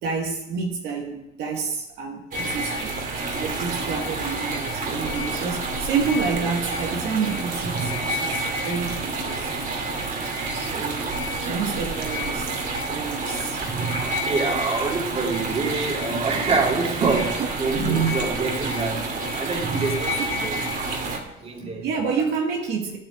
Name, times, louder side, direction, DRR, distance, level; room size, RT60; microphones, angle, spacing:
voice 1, 0.0-9.6 10.5-12.6 12.9-13.6 17.0-17.5 20.2-20.3 21.8-23.0, right 5 dB, 80° right, 1 dB, 2.0 m, -29 dB
sound 1, 2.3-21.2, right 2 dB, 50° right, 2.5 m, -28 dB
voice 2, 14.3-19.0 19.3-20.6 21.0-21.9, right 4 dB, 35° right, 0 dB, 2.6 m, -26 dB
9.5 x 8.9 x 8.4 m, 0.89 s
cardioid pair, 110°, 17 cm